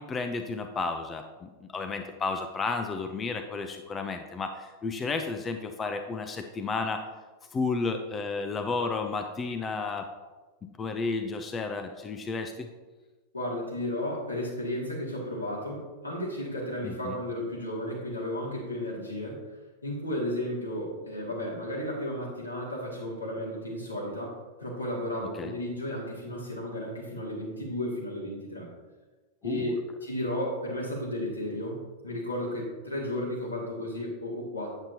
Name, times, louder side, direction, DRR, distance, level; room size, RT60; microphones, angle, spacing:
voice 1, 0.0-7.0 7.5-10.1 10.6-12.7 16.8-17.1 25.3-25.5 29.4-29.7, left 4 dB, 20° left, 6 dB, 0.6 m, -32 dB
voice 2, 13.3-19.4 19.8-28.7 29.4-34.7, left 1 dB, 85° left, -4 dB, 2.3 m, -33 dB
8.9 x 7.9 x 2.8 m, 1.2 s
figure-of-eight pair, 90°, 0 cm